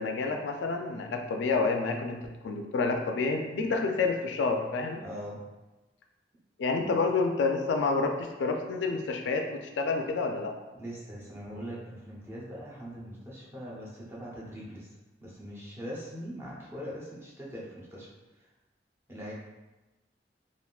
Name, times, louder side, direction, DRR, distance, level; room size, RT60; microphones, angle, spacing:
voice 1, 0.0-5.0 6.6-10.5, left 4 dB, 75° left, 4 dB, 0.3 m, -29 dB
voice 2, 5.0-5.4 6.8-6.9 10.7-14.9 15.2-18.1 19.1-19.3, equal, 15° right, -6 dB, 0.7 m, -41 dB
3.5 x 2.5 x 2.3 m, 1.1 s
head